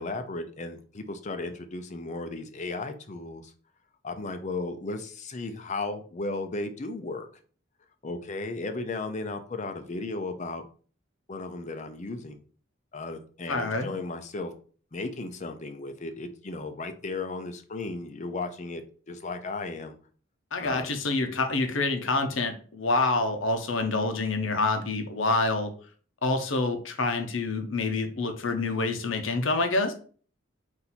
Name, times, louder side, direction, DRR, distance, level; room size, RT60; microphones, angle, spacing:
voice 1, 0.0-3.5 4.0-7.3 8.0-10.6 11.3-12.4 12.9-14.5 14.9-18.8 19.1-20.0 20.6-20.9, left 3 dB, 35° left, 8 dB, 0.5 m, -35 dB
voice 2, 13.5-13.9 20.5-25.7 26.2-29.9, left 3 dB, 70° left, 6 dB, 0.7 m, -27 dB
4.1 x 2.7 x 4.2 m, 0.42 s
head